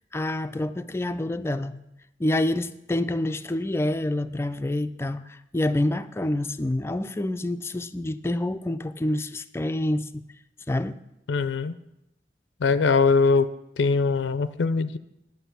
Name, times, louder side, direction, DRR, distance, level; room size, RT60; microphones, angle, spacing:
voice 1, 0.1-1.8 2.2-10.1 10.7-11.0, left 1 dB, 15° left, 10 dB, 0.3 m, -27 dB
voice 2, 11.3-11.7 12.6-13.5 13.8-15.0, left 4 dB, 90° left, 13 dB, 0.5 m, -21 dB
10.0 x 6.7 x 6.9 m, 0.86 s
head